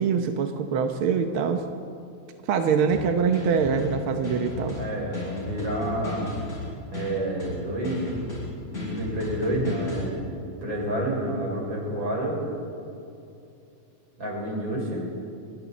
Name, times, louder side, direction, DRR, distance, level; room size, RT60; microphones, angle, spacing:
voice 1, 0.0-1.6 2.5-4.8, right 6 dB, 65° right, 5 dB, 1.4 m, -24 dB
sound 1, 2.9-10.1, left 3 dB, 30° left, 7.1 m, -35 dB
voice 2, 4.7-6.3 6.9-8.2 8.6-12.4 14.2-15.1, right 1 dB, 40° right, -2 dB, 5.7 m, -29 dB
29.0 x 22.0 x 4.1 m, 2.6 s
omnidirectional pair, 3.4 m